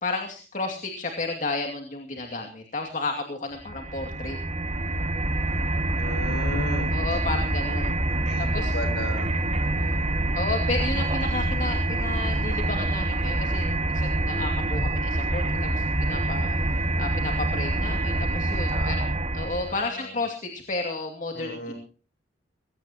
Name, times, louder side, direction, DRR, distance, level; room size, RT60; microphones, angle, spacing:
voice 1, 0.0-4.4 6.9-8.0 8.4-8.8 10.3-16.6 17.0-21.7, left 3 dB, 45° left, 3 dB, 2.5 m, -32 dB
sound 1, 3.6-19.8, right 1 dB, 35° right, 1.8 m, -26 dB
voice 2, 5.9-6.9 8.0-10.2 18.7-19.1 19.7-20.1 21.3-21.7, left 1 dB, 60° left, 7 dB, 7.0 m, -36 dB
22.0 x 17.5 x 3.0 m, 0.38 s
head